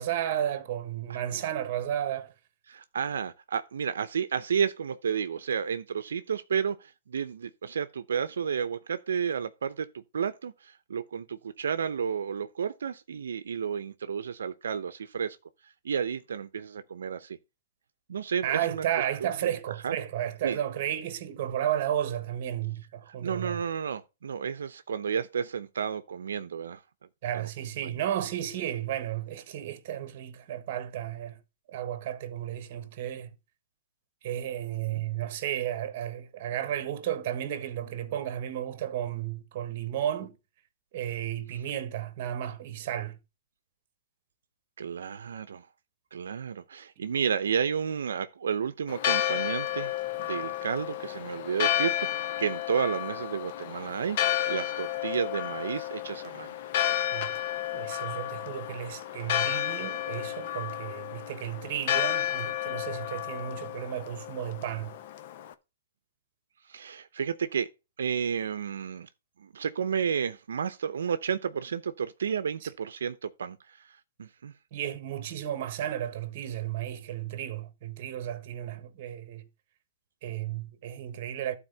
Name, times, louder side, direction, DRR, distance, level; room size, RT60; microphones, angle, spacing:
voice 1, 0.0-2.3 18.4-23.6 27.2-31.4 31.7-33.3 34.2-40.3 40.9-43.2 47.0-47.1 57.1-57.4 57.7-64.9 74.7-79.4 80.2-81.6, right 11 dB, 40° right, 1.4 m, -33 dB
voice 2, 2.7-15.4 15.8-17.4 18.1-18.9 19.8-20.0 20.4-20.6 23.2-26.8 27.3-27.5 27.8-28.0 34.9-35.0 44.8-45.7 46.1-49.9 50.2-54.2 54.5-56.5 66.7-67.7 68.0-69.1 69.4-73.8 74.2-74.5, right 7 dB, 85° right, 0.7 m, -31 dB
Church bell, 48.9-65.5, left 12 dB, 45° left, 0.9 m, -32 dB
11.5 x 4.2 x 5.5 m
hypercardioid pair, 160°, 0 cm